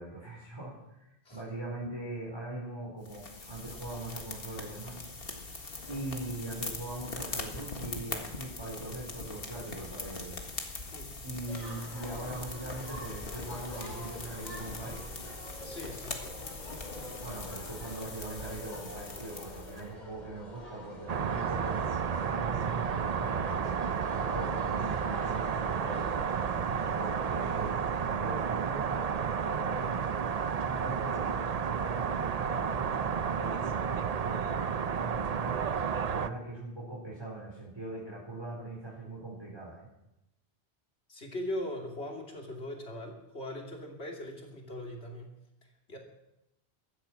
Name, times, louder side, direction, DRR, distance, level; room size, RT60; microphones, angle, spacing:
voice 1, 0.0-5.0 5.9-10.4 11.2-15.0 17.2-21.8 22.2-23.7 24.1-26.1 26.6-30.1 30.6-35.6 36.0-39.9, right 2 dB, 25° right, -5 dB, 4.4 m, -41 dB
sound 1, 3.0-19.8, left 3 dB, 60° left, 1.9 m, -42 dB
sound 2, 11.5-27.8, left 1 dB, 45° left, 3.2 m, -46 dB
voice 2, 15.6-16.4 41.1-45.3 45.6-46.0, left 1 dB, 75° left, 0 dB, 3.1 m, -40 dB
sound 3, 21.1-36.3, right 7 dB, 45° right, 0.6 m, -31 dB
16.0 x 13.0 x 6.0 m, 0.91 s
omnidirectional pair, 1.1 m